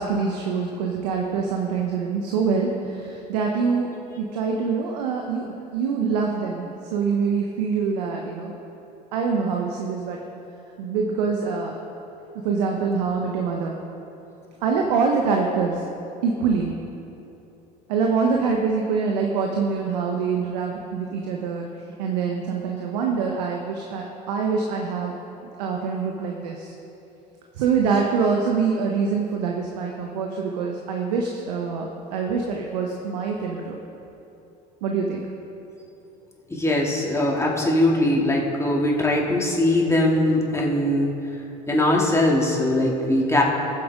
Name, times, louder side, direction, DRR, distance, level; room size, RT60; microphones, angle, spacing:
voice 1, 0.0-8.5 9.1-10.2 10.8-11.7 12.4-13.7 14.6-15.8 16.2-16.8 17.9-21.7 22.0-25.1 25.6-26.7 27.5-33.8 34.8-35.2, right 5 dB, 75° right, 1 dB, 1.0 m, -25 dB
voice 2, 36.5-41.1 41.7-43.4, left 1 dB, 15° left, -3 dB, 2.5 m, -21 dB
18.0 x 7.8 x 3.7 m, 2.9 s
hypercardioid pair, 65°, 21 cm